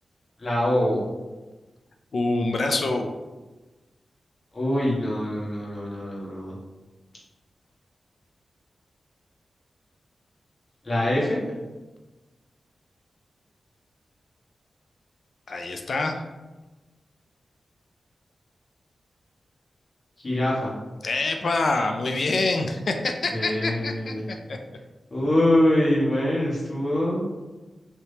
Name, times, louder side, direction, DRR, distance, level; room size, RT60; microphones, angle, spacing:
voice 1, 0.4-1.0 4.5-6.6 10.8-11.4 20.2-20.7 23.3-24.2 25.1-27.3, left 1 dB, 40° left, -6 dB, 1.3 m, -24 dB
voice 2, 2.1-3.1 15.5-16.2 21.0-24.6, left 2 dB, 65° left, 4 dB, 0.3 m, -26 dB
3.3 x 2.8 x 2.7 m, 1.2 s
cardioid pair, 70°, 0 cm